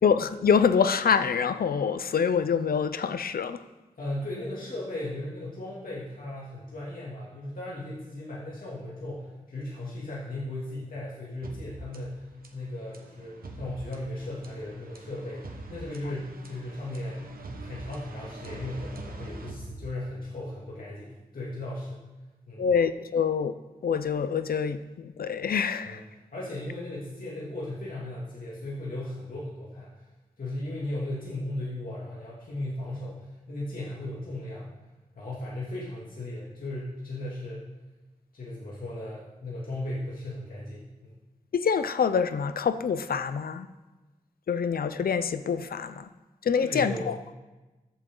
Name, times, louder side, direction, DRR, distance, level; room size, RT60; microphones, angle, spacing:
voice 1, 0.0-3.6 22.6-23.5 23.8-26.0 41.5-43.7 44.5-46.1 46.4-47.2, left 6 dB, 85° left, 11 dB, 0.6 m, -25 dB
voice 2, 4.0-17.2 17.6-22.0 22.5-22.7 25.8-26.0 26.3-29.9 30.4-34.7 35.1-37.6 38.3-41.2 46.6-47.1, left 1 dB, 70° left, -7 dB, 2.6 m, -36 dB
sound 1, 11.4-20.4, right 2 dB, 80° right, 1.3 m, -44 dB
14.5 x 8.3 x 3.9 m, 1.1 s
wide cardioid pair, 115°, 15 cm